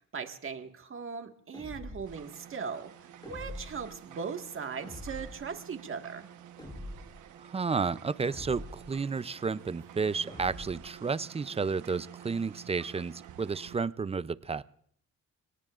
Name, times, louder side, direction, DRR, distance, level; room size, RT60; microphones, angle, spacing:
voice 1, 0.0-2.9 3.3-6.3, right 5 dB, 45° right, 5 dB, 1.8 m, -39 dB
sound 1, 1.5-2.2 3.2-3.9 4.8-5.5 6.6-7.2 8.3-9.0 10.3-10.9, left 1 dB, 15° left, 5.4 m, -44 dB
sound 2, 2.0-13.8, right 10 dB, 80° right, 1.2 m, -50 dB
voice 2, 7.4-14.6, right 5 dB, 20° right, 16 dB, 0.5 m, -32 dB
29.5 x 18.5 x 2.5 m, 0.63 s
cardioid pair, 90°, 30 cm